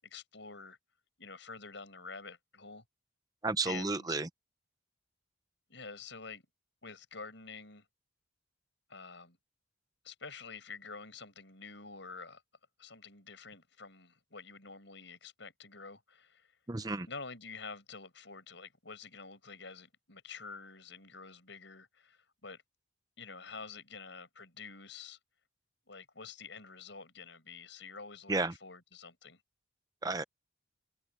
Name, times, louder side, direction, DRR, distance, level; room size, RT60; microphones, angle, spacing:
voice 1, 0.0-0.8 1.2-2.8 3.6-4.2 5.7-6.4 6.8-7.8 8.9-9.4 10.0-12.4 12.8-16.6 17.1-22.6 23.2-25.2 25.9-29.4, left 5 dB, 65° left, 6.5 m, -48 dB
voice 2, 3.4-4.3 16.7-17.1 28.3-28.5 30.0-30.2, right 3 dB, 20° right, 0.6 m, -32 dB
head